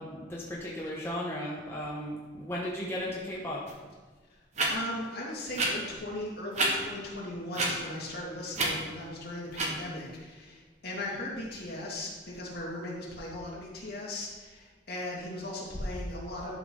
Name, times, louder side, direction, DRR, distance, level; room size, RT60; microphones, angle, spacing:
voice 1, 0.0-3.6, equal, 15° left, -5 dB, 1.1 m, -35 dB
sound 1, 3.7-3.8 4.5-4.7 5.5-5.7 6.5-6.7 7.5-7.7 8.5-8.7 9.5-9.7, right 2 dB, 40° right, 1.4 m, -27 dB
voice 2, 4.7-16.5, left 1 dB, 55° left, -4 dB, 2.4 m, -38 dB
11.5 x 5.7 x 3.9 m, 1.4 s
head